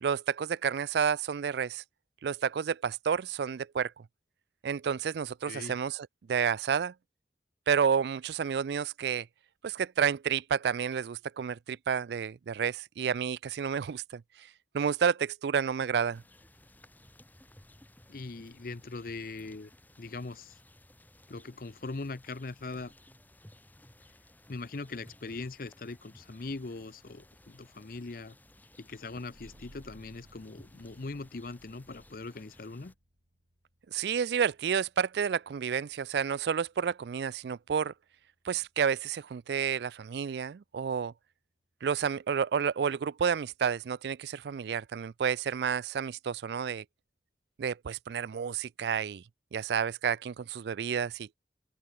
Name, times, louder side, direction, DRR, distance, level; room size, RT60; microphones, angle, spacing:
voice 1, 0.0-1.8 2.2-3.9 4.6-6.9 7.7-9.3 9.6-14.5 14.7-16.2 33.9-37.9 38.5-41.1 41.8-46.8 47.6-49.2 49.5-51.4, right 7 dB, 70° right, 0.4 m, -30 dB
voice 2, 5.5-5.8 18.1-19.7 20.0-20.6 21.3-22.9 24.5-28.4 28.8-32.9, left 3 dB, 50° left, 0.7 m, -41 dB
sound 1, 16.1-32.9, left 1 dB, 10° left, 2.5 m, -58 dB
sound 2, 29.3-40.5, equal, 85° right, 7.5 m, -63 dB
open air
head